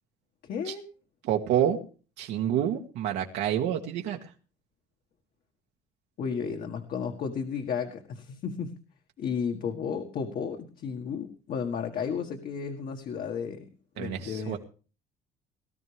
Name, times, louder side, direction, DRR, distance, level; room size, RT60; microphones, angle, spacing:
voice 1, 0.4-0.9 6.2-8.7 9.2-13.7 14.0-14.6, left 6 dB, 60° left, 4 dB, 1.9 m, -33 dB
voice 2, 1.2-1.8 2.2-4.2 14.0-14.6, right 10 dB, 90° right, 1 dB, 1.9 m, -28 dB
19.0 x 12.5 x 3.5 m, 0.37 s
cardioid pair, 110°, 17 cm